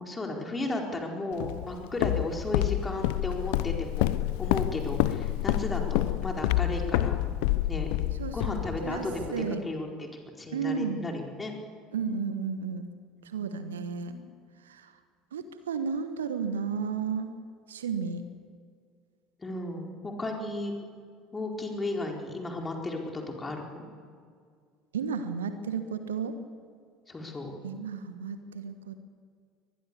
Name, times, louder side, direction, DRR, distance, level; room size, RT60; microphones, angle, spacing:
voice 1, 0.0-4.1 4.4-7.2 7.7-7.9 8.3-9.3 9.6-9.9 10.4-11.5 13.4-13.8 14.1-14.3 19.4-20.7 21.3-23.8 27.1-27.5, left 2 dB, 20° left, 1 dB, 4.4 m, -34 dB
Walk footsteps, 1.4-9.3, left 15 dB, 60° left, 0.7 m, -28 dB
voice 2, 8.1-8.4 8.8-9.6 10.5-11.1 11.9-12.9 13.2-14.2 14.6-15.0 15.3-17.4 17.7-18.3 24.9-26.4 27.6-29.0, right 6 dB, 70° right, 10 dB, 1.3 m, -33 dB
23.0 x 20.5 x 7.0 m, 2.1 s
figure-of-eight pair, 65°, 0 cm